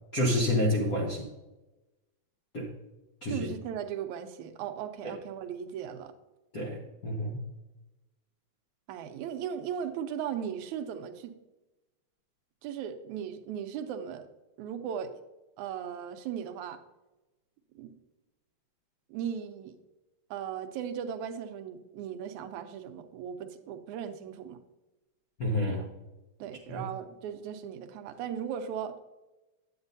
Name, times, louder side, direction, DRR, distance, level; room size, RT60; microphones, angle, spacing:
voice 1, 0.1-1.3 2.5-2.7 3.2-3.5 6.5-6.8 7.0-7.4 25.4-25.8 26.7-26.8, left 1 dB, 60° left, -2 dB, 0.9 m, -28 dB
voice 2, 3.3-6.1 8.9-11.3 12.6-14.3 14.6-15.1 15.6-16.8 17.8-17.9 19.1-19.8 20.3-24.6 25.7-25.9 26.4-29.0, right 8 dB, 85° right, 8 dB, 2.1 m, -37 dB
9.7 x 8.8 x 2.7 m, 1.0 s
omnidirectional pair, 3.3 m